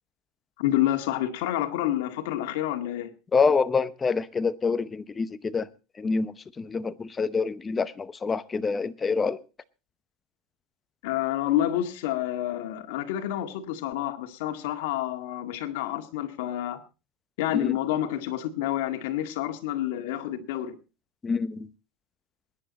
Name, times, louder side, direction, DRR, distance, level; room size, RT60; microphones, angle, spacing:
voice 1, 0.6-3.1 11.0-16.8 17.4-20.8, left 12 dB, 80° left, 2.0 m, -28 dB
voice 2, 3.3-5.7 6.0-9.4 17.6-17.7 21.2-21.7, left 5 dB, 20° left, 0.7 m, -26 dB
21.5 x 10.5 x 4.1 m
supercardioid pair, 145°, 0 cm